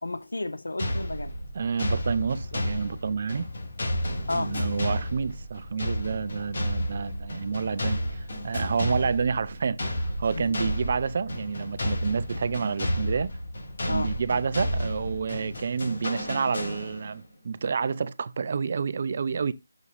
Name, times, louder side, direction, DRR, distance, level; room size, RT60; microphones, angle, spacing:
voice 1, 0.0-1.4 4.3-4.6 10.3-10.6 13.9-14.2, left 2 dB, 90° left, 0.8 m, -32 dB
sound 1, 0.8-17.2, equal, 60° left, 3.2 m, -31 dB
voice 2, 1.5-3.5 4.3-13.3 13.8-19.5, right 5 dB, 50° right, 0.5 m, -29 dB
8.2 x 6.3 x 2.6 m
figure-of-eight pair, 160°, 0 cm